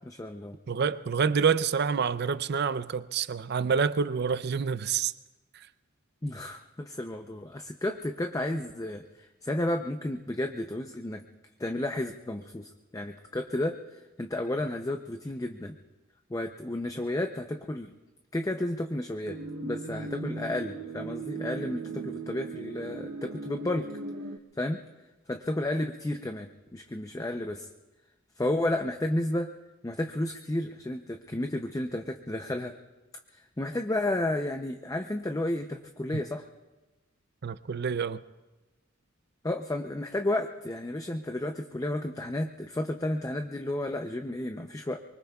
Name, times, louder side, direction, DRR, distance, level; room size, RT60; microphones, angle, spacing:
voice 1, 0.1-0.6 6.2-11.2 11.6-15.8 16.3-18.0 18.3-23.9 24.5-24.8 25.3-27.7 28.4-29.5 29.8-32.7 33.3-36.5 39.4-45.0, left 1 dB, 15° left, 0.5 m, -32 dB
voice 2, 0.7-5.1 37.4-38.2, right 6 dB, 55° right, 0.5 m, -27 dB
sound 1, 19.2-24.4, right 3 dB, 85° right, 0.9 m, -38 dB
24.0 x 24.0 x 2.3 m
head